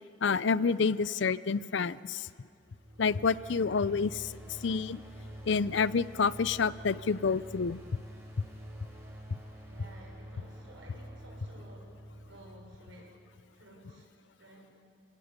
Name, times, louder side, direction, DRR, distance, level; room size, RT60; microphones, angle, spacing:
voice 1, 0.2-2.3 3.0-4.3 4.6-5.0 5.5-7.8, left 5 dB, 70° left, 18 dB, 0.5 m, -28 dB
sound 1, 2.6-13.6, equal, 15° right, 4.1 m, -48 dB
voice 2, 9.6-13.2 13.5-14.1 14.4-14.8, right 1 dB, 80° right, 0 dB, 6.6 m, -54 dB
30.0 x 18.5 x 8.3 m, 2.5 s
head